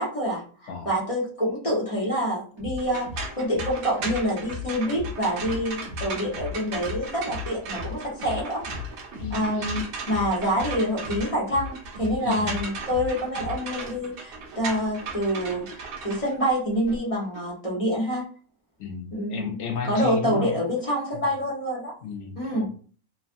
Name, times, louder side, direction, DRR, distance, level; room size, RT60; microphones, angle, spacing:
voice 1, 0.0-8.6 9.3-18.3 19.1-19.6 19.8-21.9 22.3-22.7, equal, 25° left, -6 dB, 0.9 m, -27 dB
sound 1, 2.6-17.6, left 5 dB, 35° right, 0.8 m, -39 dB
sound 2, 2.8-17.0, right 4 dB, 70° right, 1.1 m, -37 dB
voice 2, 9.2-9.8 12.2-12.6 18.8-20.5 22.0-22.7, left 5 dB, 65° left, 3 dB, 0.7 m, -33 dB
3.2 x 2.2 x 2.5 m, 0.41 s
omnidirectional pair, 1.6 m